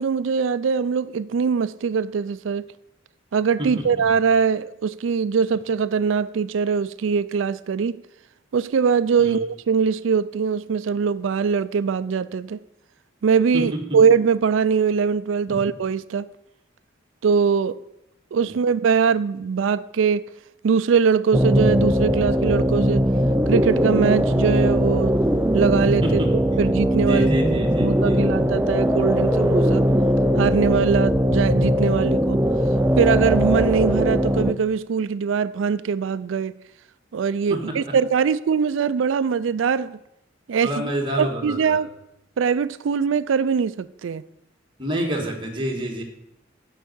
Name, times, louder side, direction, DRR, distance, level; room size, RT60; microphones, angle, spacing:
voice 1, 0.0-2.7 3.3-8.0 8.5-12.6 13.2-16.3 17.2-17.8 18.3-20.3 20.6-23.0 23.5-25.2 25.5-27.3 27.8-29.8 30.4-32.4 33.0-36.5 37.1-40.0 40.5-40.9 41.2-41.9 42.4-44.2, right 6 dB, 85° right, 0.4 m, -22 dB
voice 2, 3.6-4.1 9.2-9.4 13.5-13.8 15.5-15.6 18.4-18.5 26.0-26.6 27.0-28.3 37.5-37.8 40.6-41.8 44.8-46.0, right 1 dB, 25° right, 1.8 m, -28 dB
sound 1, 21.3-34.5, equal, 10° right, 0.4 m, -20 dB
8.2 x 5.5 x 7.8 m
head